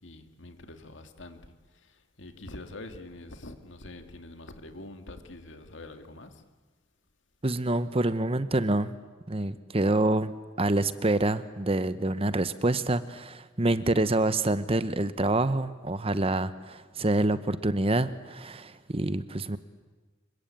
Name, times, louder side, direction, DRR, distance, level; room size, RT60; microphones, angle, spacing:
voice 1, 0.0-6.4 13.7-14.1, left 2 dB, 65° left, 7 dB, 2.2 m, -45 dB
voice 2, 7.4-8.9 9.3-10.3 10.6-19.6, right 2 dB, 30° right, 13 dB, 0.9 m, -27 dB
26.5 x 23.5 x 8.8 m, 1.3 s
head